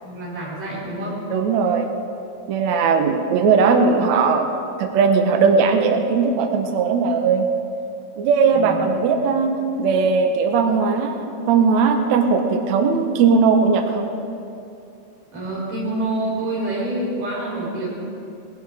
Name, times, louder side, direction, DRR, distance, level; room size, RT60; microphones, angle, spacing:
voice 1, 0.0-1.2 8.5-9.1 15.3-17.9, right 1 dB, 55° right, -6 dB, 5.9 m, -27 dB
voice 2, 1.3-1.9 2.5-4.5 4.8-7.5 8.2-14.1, right 5 dB, 75° right, 4 dB, 1.7 m, -18 dB
20.0 x 11.5 x 4.9 m, 2.7 s
omnidirectional pair, 4.5 m